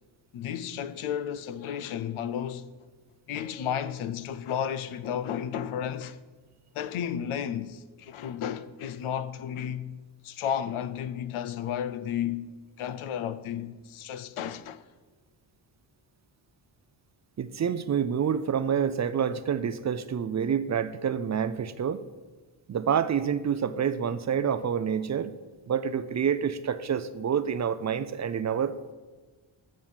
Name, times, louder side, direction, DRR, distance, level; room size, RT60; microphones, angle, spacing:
voice 1, 0.3-2.7 3.3-6.2 6.7-10.0 10.2-12.5 12.8-14.8, left 9 dB, 85° left, 0.6 m, -33 dB
voice 2, 17.4-22.0 22.7-25.3 25.7-28.9, right 8 dB, 35° right, 0.4 m, -28 dB
7.4 x 6.3 x 7.2 m
cardioid pair, 95°, 48 cm